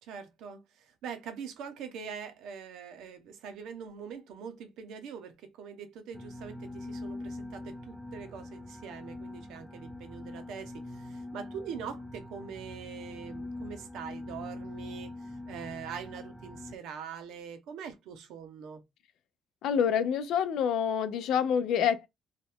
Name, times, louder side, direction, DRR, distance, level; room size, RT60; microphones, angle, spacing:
voice 1, 0.0-18.8, right 7 dB, 90° right, 0.8 m, -43 dB
sound 1, 6.1-16.8, left 2 dB, 5° left, 0.5 m, -43 dB
voice 2, 19.6-22.1, left 8 dB, 85° left, 0.5 m, -27 dB
3.0 x 2.4 x 3.4 m
cardioid pair, 90°, 0 cm